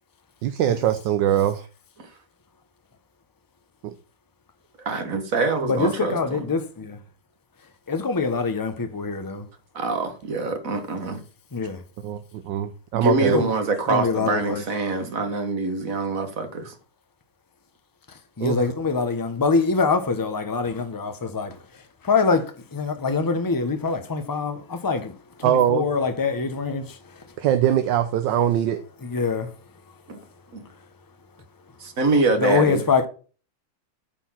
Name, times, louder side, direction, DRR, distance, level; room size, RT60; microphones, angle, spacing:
voice 1, 0.4-1.7 3.8-3.9 12.0-13.4 18.4-18.6 25.4-25.8 27.4-28.8, right 11 dB, 75° right, 1.3 m, -22 dB
voice 2, 4.8-6.2 9.7-11.2 12.9-16.7 30.1-30.2 30.5-30.6 31.8-32.8, right 3 dB, 45° right, 1.7 m, -24 dB
voice 3, 5.6-7.0 7.9-9.5 11.5-11.8 13.1-13.5 13.9-14.6 18.1-27.4 29.0-30.3 30.6-30.9 32.4-33.1, left 4 dB, 25° left, 0.4 m, -25 dB
8.9 x 4.6 x 5.7 m
omnidirectional pair, 2.1 m